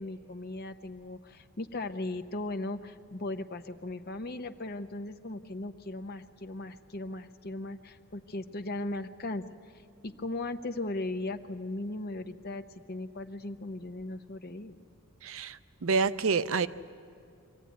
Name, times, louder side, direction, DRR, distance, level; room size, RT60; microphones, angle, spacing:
voice 1, 0.0-9.4 10.0-14.7, left 2 dB, 45° left, 0.7 m, -37 dB
voice 2, 15.2-16.7, right 5 dB, 65° right, 0.5 m, -28 dB
24.5 x 14.5 x 9.4 m
head